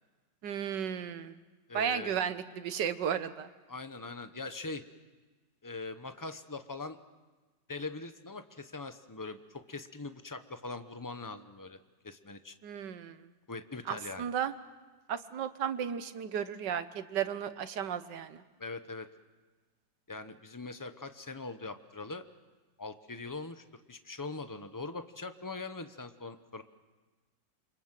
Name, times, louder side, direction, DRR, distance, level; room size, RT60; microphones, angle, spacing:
voice 1, 0.4-1.4 1.7-3.5 12.6-13.3 13.9-14.5 15.1-18.4, right 8 dB, 70° right, 12 dB, 1.7 m, -34 dB
voice 2, 1.7-2.1 3.7-4.8 5.6-7.0 7.7-11.8 12.0-12.5 13.5-14.3 18.6-19.1 20.1-22.2 22.8-26.6, left 3 dB, 25° left, 9 dB, 0.4 m, -42 dB
28.0 x 25.5 x 7.5 m, 1.3 s
omnidirectional pair, 2.0 m